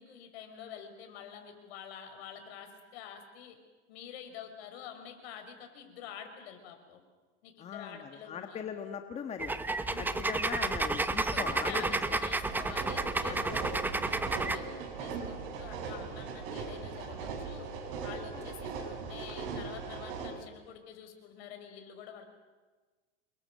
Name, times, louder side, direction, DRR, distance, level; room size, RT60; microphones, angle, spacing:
voice 1, 0.0-3.6 3.9-7.0 7.4-8.6 9.8-10.4 11.3-13.5 14.0-17.7 18.0-22.2, left 8 dB, 60° left, 6 dB, 6.0 m, -47 dB
voice 2, 7.6-9.5 10.0-12.2 13.3-13.6 15.0-15.1 18.3-18.4, left 7 dB, 20° left, 6 dB, 1.6 m, -40 dB
sound 1, 9.4-14.6, right 2 dB, 5° right, 1.0 m, -31 dB
sound 2, 12.4-20.3, right 5 dB, 50° right, 6.6 m, -39 dB
29.0 x 23.0 x 7.8 m, 1.3 s
supercardioid pair, 150°, 35 cm